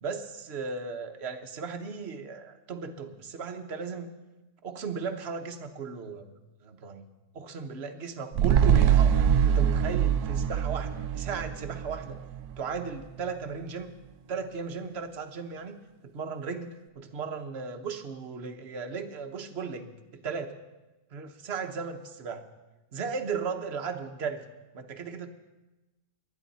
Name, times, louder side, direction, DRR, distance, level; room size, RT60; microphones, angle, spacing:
voice 1, 0.0-4.1 4.6-7.0 7.3-9.2 9.5-12.2 12.6-13.9 14.3-15.8 16.0-20.5 21.1-22.4 22.9-24.4 24.7-25.3, right 5 dB, 45° right, 6 dB, 1.1 m, -36 dB
sound 1, 8.3-12.9 13.2-13.3, right 8 dB, 70° right, 1.1 m, -24 dB
19.5 x 12.0 x 4.2 m, 1.1 s
omnidirectional pair, 1.8 m